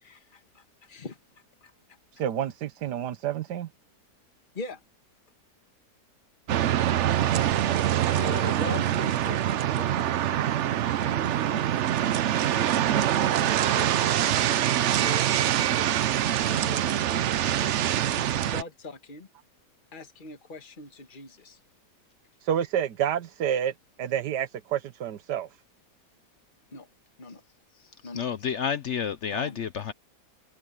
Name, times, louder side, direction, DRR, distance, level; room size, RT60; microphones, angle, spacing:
voice 1, 0.0-1.2 1.6-1.7 4.5-4.8 7.7-9.4 9.7-10.6 10.8-11.7 12.0-17.3 17.6-19.3 19.9-21.6 26.7-26.9 27.2-27.4 27.7-28.3 29.3-29.6, left 3 dB, 30° left, 1.7 m, -42 dB
voice 2, 2.2-3.7 22.4-25.5, right 10 dB, 80° right, 1.5 m, -29 dB
sound 1, 6.5-18.6, right 11 dB, 65° right, 0.7 m, -24 dB
voice 3, 28.1-29.9, left 7 dB, 60° left, 0.8 m, -30 dB
omnidirectional pair, 1.8 m